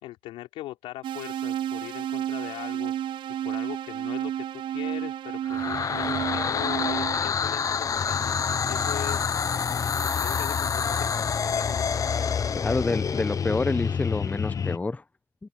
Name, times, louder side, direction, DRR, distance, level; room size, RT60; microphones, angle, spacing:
voice 1, 0.0-2.9 3.4-8.4 8.7-9.3 10.0-11.9, left 16 dB, 80° left, 4.1 m, -40 dB
sound 1, 1.0-7.2, right 11 dB, 65° right, 0.7 m, -31 dB
sound 2, 5.5-14.8, left 6 dB, 40° left, 0.9 m, -27 dB
voice 2, 12.6-15.0, left 3 dB, 15° left, 0.8 m, -27 dB
supercardioid pair, 75°, 9 cm